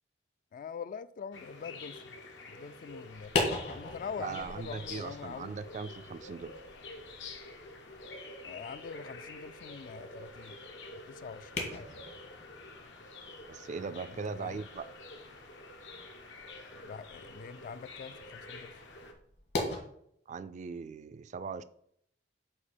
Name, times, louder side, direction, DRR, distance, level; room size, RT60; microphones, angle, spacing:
voice 1, 0.5-2.1 2.5-3.3 3.7-5.5 8.4-10.6 11.1-11.9 14.4-14.7 16.8-18.7, left 6 dB, 50° left, 0.3 m, -44 dB
sound 1, 1.3-19.1, left 2 dB, 85° left, 1.0 m, -48 dB
sound 2, 3.1-19.8, left 2 dB, 70° left, 1.9 m, -41 dB
voice 2, 4.2-6.6 13.5-14.9 20.3-21.6, right 5 dB, 40° right, 0.3 m, -39 dB
8.0 x 2.8 x 5.3 m
head